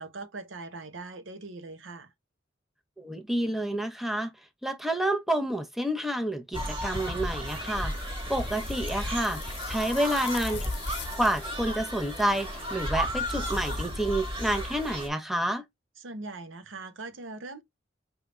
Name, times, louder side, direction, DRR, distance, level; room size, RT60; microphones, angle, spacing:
voice 1, 0.0-2.1 16.0-17.6, right 3 dB, 75° right, 0.8 m, -41 dB
voice 2, 3.0-4.3 4.6-10.6 11.2-15.6, right 1 dB, ahead, 0.7 m, -29 dB
sound 1, 6.5-15.1, equal, 30° right, 1.6 m, -33 dB
sound 2, 7.8-12.8, left 13 dB, 60° left, 0.8 m, -45 dB
4.7 x 3.4 x 2.4 m
head